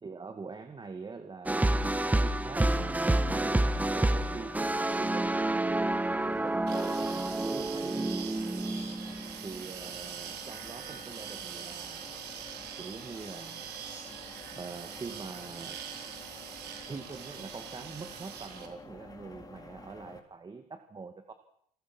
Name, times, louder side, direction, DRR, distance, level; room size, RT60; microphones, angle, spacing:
voice 1, 0.0-5.5 6.1-8.3 9.4-12.1 12.8-13.7 14.5-15.8 16.9-21.3, right 4 dB, 25° right, 7 dB, 2.2 m, -44 dB
sound 1, 1.5-9.6, right 1 dB, 10° right, 1.5 m, -29 dB
sound 2, 3.3-20.2, left 3 dB, 20° left, 4.6 m, -50 dB
sound 3, 6.7-18.7, right 9 dB, 75° right, 4.7 m, -43 dB
29.5 x 21.0 x 6.2 m, 0.69 s
cardioid pair, 110°, 17 cm